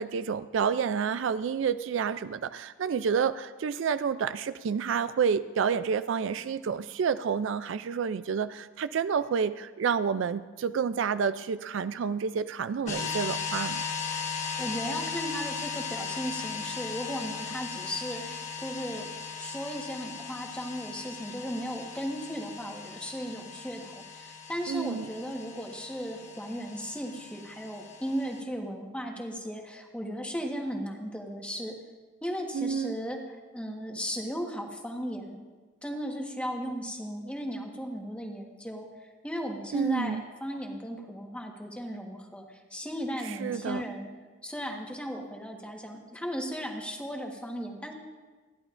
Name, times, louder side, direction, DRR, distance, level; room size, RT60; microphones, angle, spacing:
voice 1, 0.0-13.9 24.7-25.1 32.5-32.9 39.7-40.2 43.2-43.9, right 6 dB, 65° right, 13 dB, 0.3 m, -29 dB
sound 1, 12.9-28.4, left 6 dB, 35° left, 1.3 m, -38 dB
voice 2, 14.2-19.1 19.4-31.8 32.2-33.2 33.5-35.4 35.8-44.1 44.4-47.9, equal, 5° left, 1 dB, 1.3 m, -36 dB
28.0 x 11.0 x 2.5 m, 1.3 s
head